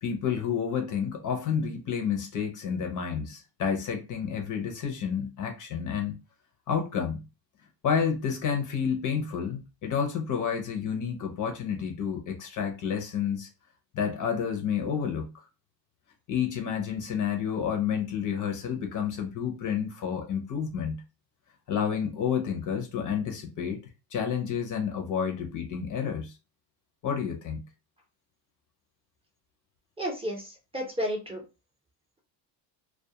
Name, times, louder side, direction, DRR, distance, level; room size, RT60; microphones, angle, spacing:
voice 1, 0.0-6.1 6.7-7.2 7.8-13.5 13.9-15.3 16.3-21.0 21.7-23.8 24.1-26.3 27.0-27.6, left 7 dB, 40° left, 0.6 m, -30 dB
voice 2, 30.0-31.4, equal, 10° right, 0.6 m, -32 dB
2.3 x 2.2 x 2.7 m
cardioid pair, 125°, 47 cm